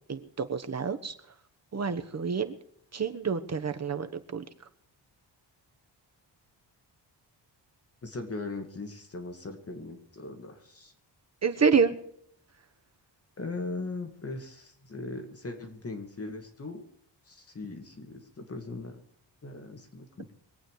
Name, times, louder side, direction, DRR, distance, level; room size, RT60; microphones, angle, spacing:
voice 1, 0.1-1.1 1.7-2.6 2.9-4.4 11.4-11.9, right 5 dB, 35° right, 9 dB, 1.2 m, -28 dB
voice 2, 8.0-10.9 13.4-16.8 17.3-19.0 19.4-20.3, left 3 dB, 30° left, 5 dB, 2.3 m, -39 dB
23.5 x 8.7 x 4.8 m, 0.70 s
wide cardioid pair, 120°, 43 cm